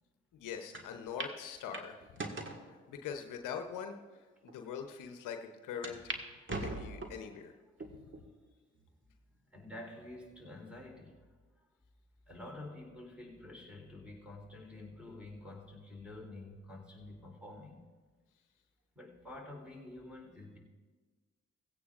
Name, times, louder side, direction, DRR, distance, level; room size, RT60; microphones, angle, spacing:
voice 1, 0.3-2.0 2.7-6.2 6.5-7.5, left 7 dB, 70° left, 0.9 m, -43 dB
Pool Table ball sinks in hole, 0.7-0.8 1.2-1.3 1.7-2.6 3.3-3.4 4.1-4.2 4.5-4.6 5.8-6.2 6.5-7.3 7.8-8.2 8.8-8.9 10.0-10.4, right 3 dB, 35° right, 1.8 m, -40 dB
voice 2, 9.5-11.2 11.6-11.7 12.3-17.9 18.9-20.6, left 2 dB, 5° right, 3.7 m, -49 dB
16.5 x 16.5 x 2.5 m
hypercardioid pair, 40°, 32 cm